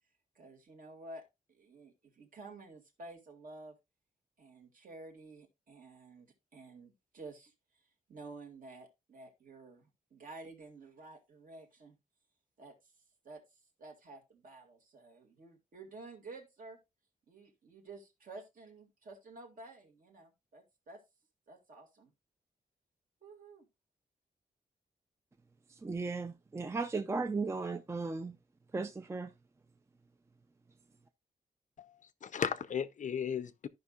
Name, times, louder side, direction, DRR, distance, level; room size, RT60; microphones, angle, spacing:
voice 1, 0.4-1.2 1.5-3.8 4.4-7.5 8.1-12.0 12.6-12.7 13.2-13.4 13.8-16.8 17.3-21.0 21.5-22.1 23.2-23.7, right 2 dB, 60° right, 2.1 m, -51 dB
voice 2, 25.7-28.4 28.7-29.3, right 3 dB, 15° right, 0.4 m, -36 dB
voice 3, 31.8-33.7, left 7 dB, 55° left, 0.5 m, -36 dB
14.0 x 5.4 x 2.3 m
wide cardioid pair, 140°, 16 cm